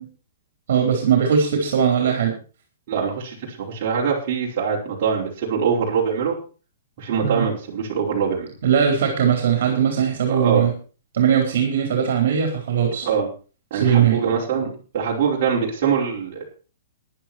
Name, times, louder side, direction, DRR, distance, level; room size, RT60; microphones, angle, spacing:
voice 1, 0.7-2.3 7.2-7.4 8.6-10.7 11.1-13.1 13.7-14.2, right 8 dB, 55° right, 2 dB, 4.2 m, -19 dB
voice 2, 2.9-6.4 7.0-8.5 10.3-10.7 13.0-13.3 13.7-14.7 14.9-16.4, right 6 dB, 35° right, -4 dB, 5.2 m, -23 dB
15.0 x 11.0 x 4.5 m, 0.37 s
hypercardioid pair, 175°, 0 cm